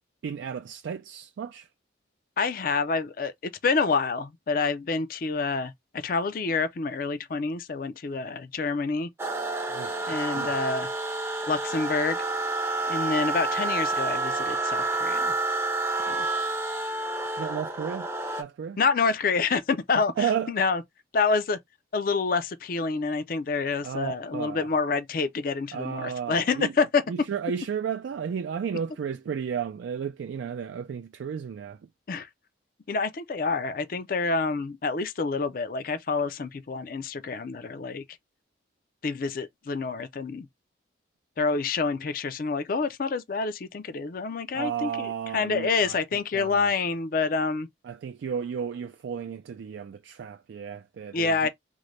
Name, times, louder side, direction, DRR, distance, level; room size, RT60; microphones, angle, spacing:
voice 1, 0.2-1.7 9.7-10.6 17.4-18.1 18.3-18.8 20.2-20.5 23.8-24.7 25.7-26.7 27.1-31.8 44.5-46.0 46.3-46.7 47.8-51.5, right 7 dB, 80° right, 0.3 m, -33 dB
voice 2, 2.4-9.1 10.1-10.9 11.5-12.2 12.9-15.3 16.1-16.3 18.8-20.8 21.1-21.6 21.9-27.3 32.1-32.3 32.9-38.0 39.0-40.5 41.4-47.7 51.1-51.5, left 4 dB, 50° left, 0.4 m, -27 dB
sound 1, 9.2-18.4, right 2 dB, 15° right, 0.5 m, -29 dB
3.8 x 2.1 x 3.1 m
head